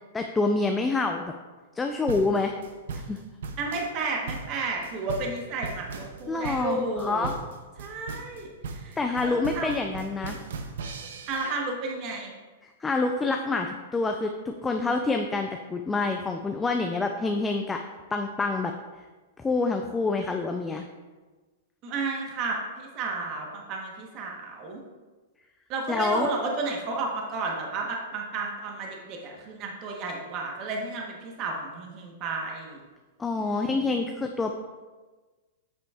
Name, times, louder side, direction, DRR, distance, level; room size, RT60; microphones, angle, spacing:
voice 1, 0.1-1.3 1.8-2.5 2.9-3.2 6.3-7.3 9.0-10.4 12.8-17.8 18.1-18.7 19.4-20.9 25.9-26.3 33.2-34.6, left 3 dB, 10° left, 4 dB, 0.4 m, -27 dB
sound 1, 2.1-11.6, right 4 dB, 75° right, 0.7 m, -38 dB
voice 2, 3.6-7.3 7.8-9.7 11.3-12.3 21.8-24.8 25.7-32.8 33.4-33.8, right 3 dB, 40° right, 0 dB, 1.1 m, -32 dB
8.3 x 6.8 x 2.4 m, 1.3 s
hypercardioid pair, 135°, 0 cm